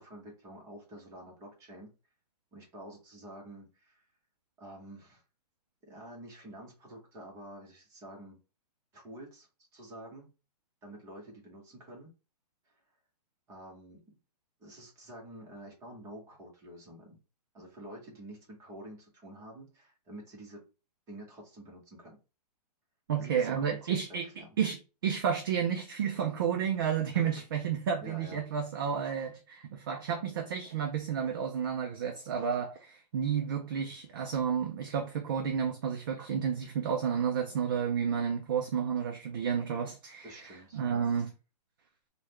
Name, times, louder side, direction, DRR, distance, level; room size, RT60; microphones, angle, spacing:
voice 1, 0.0-1.9 2.5-4.1 4.6-5.2 5.9-8.4 8.9-10.3 10.8-12.1 12.7-12.8 13.5-14.0 14.6-17.2 17.5-20.6 21.1-22.2 23.2-24.6 27.1-27.4 28.0-28.4 40.2-41.1, right 1 dB, 15° right, 0.8 m, -48 dB
voice 2, 23.1-24.3 24.6-40.5 40.7-41.3, right 7 dB, 35° right, 0.3 m, -31 dB
3.5 x 2.2 x 2.9 m
hypercardioid pair, 165°, 21 cm